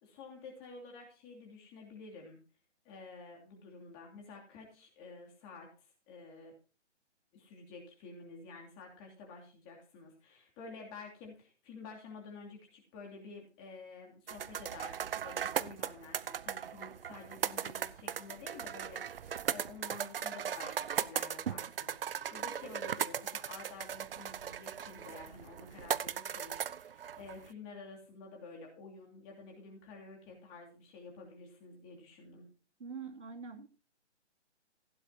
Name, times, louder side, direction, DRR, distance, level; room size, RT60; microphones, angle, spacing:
voice 1, 0.0-2.4 2.8-5.7 6.1-6.5 7.3-32.5, left 4 dB, 20° left, 0 dB, 2.8 m, -50 dB
sound 1, 14.3-27.5, right 8 dB, 55° right, 0.6 m, -38 dB
voice 2, 32.8-33.7, right 5 dB, 90° right, 2 dB, 2.9 m, -44 dB
15.5 x 9.8 x 2.9 m, 0.35 s
hypercardioid pair, 160°, 35 cm